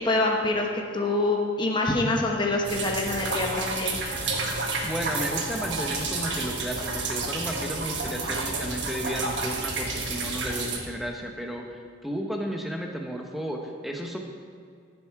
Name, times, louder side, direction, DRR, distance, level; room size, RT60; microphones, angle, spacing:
voice 1, 0.0-4.0, left 2 dB, 20° left, 0 dB, 1.0 m, -25 dB
sound 1, 2.6-10.8, right 3 dB, 60° right, 1.4 m, -30 dB
voice 2, 4.8-14.2, equal, ahead, 1 dB, 0.9 m, -33 dB
14.5 x 7.4 x 4.7 m, 2.2 s
head